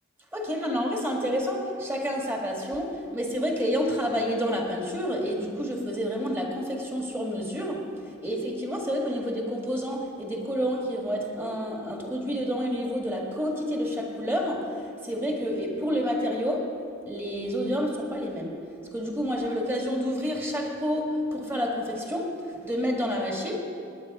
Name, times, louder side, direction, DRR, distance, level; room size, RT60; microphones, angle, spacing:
voice 1, 0.3-16.8 17.1-23.6, equal, 10° right, 0 dB, 1.7 m, -29 dB
17.5 x 9.7 x 4.8 m, 2.4 s
head